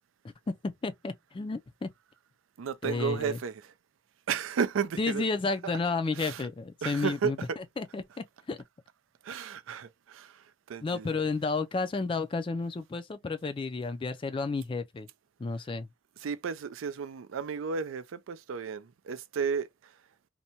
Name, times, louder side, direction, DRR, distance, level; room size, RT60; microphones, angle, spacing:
voice 1, 0.2-1.9 2.8-3.4 5.0-7.4 7.8-8.6 10.8-15.1 15.4-15.9, left 3 dB, 25° left, 0.3 m, -32 dB
voice 2, 2.6-3.7 4.3-5.2 5.6-5.8 6.1-6.5 6.8-7.3 9.2-11.1 16.2-20.0, right 6 dB, 90° right, 0.4 m, -33 dB
2.6 x 2.2 x 2.7 m
head